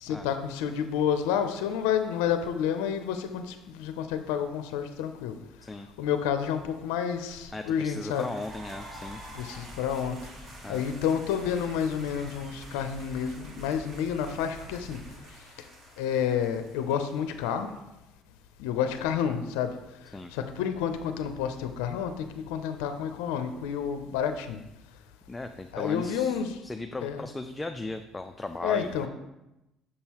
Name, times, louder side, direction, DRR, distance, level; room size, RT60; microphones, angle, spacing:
voice 1, 0.0-5.3 6.0-8.3 9.3-10.2 10.7-15.0 16.0-17.7 18.6-19.7 20.3-24.6 25.7-26.6 27.0-27.2 28.6-29.1, left 8 dB, 90° left, 8 dB, 0.5 m, -29 dB
voice 2, 7.5-9.2 10.6-10.8 20.1-20.3 25.3-29.1, left 2 dB, 15° left, 6 dB, 0.3 m, -37 dB
sound 1, 8.0-17.8, right 1 dB, 50° right, 1.8 m, -49 dB
sound 2, 8.1-15.2, left 1 dB, 20° right, 1.5 m, -50 dB
6.5 x 5.4 x 2.9 m, 0.94 s
supercardioid pair, 90°, 0 cm